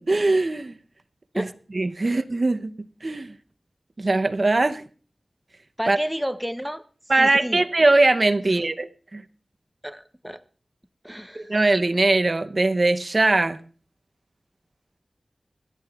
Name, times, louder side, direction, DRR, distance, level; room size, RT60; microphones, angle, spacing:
voice 1, 0.1-0.7 1.4-1.5 1.7-2.7 3.0-3.3 4.0-4.8 5.9-6.0 7.1-9.2 11.3-13.6, right 2 dB, 55° right, 0.7 m, -21 dB
voice 2, 5.8-6.8 7.2-7.6 8.4-8.5 9.8-10.4 11.0-11.5, equal, 5° right, 0.7 m, -31 dB
26.0 x 12.5 x 2.4 m
cardioid pair, 45°, 0 cm